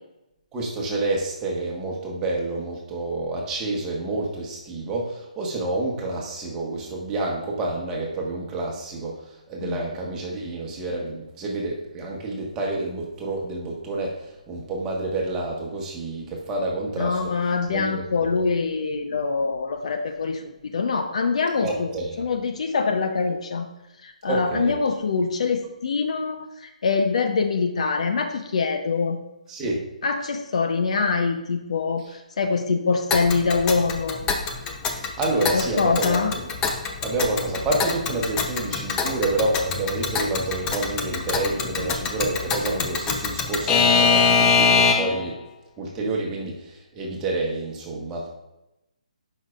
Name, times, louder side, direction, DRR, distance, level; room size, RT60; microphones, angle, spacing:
voice 1, 0.5-17.3 17.7-18.0 21.6-22.2 24.3-24.8 29.5-29.8 34.9-36.2 37.0-45.4 45.8-48.3, right 2 dB, 15° right, -2 dB, 1.4 m, -28 dB
voice 2, 17.0-21.9 22.2-23.7 24.0-29.2 30.0-34.2 35.5-36.3 41.8-42.0, left 4 dB, 55° left, 6 dB, 0.7 m, -24 dB
Alarm / Clock, 33.1-45.3, left 5 dB, 15° left, 0.6 m, -24 dB
12.5 x 5.6 x 2.4 m, 0.93 s
figure-of-eight pair, 140°, 4 cm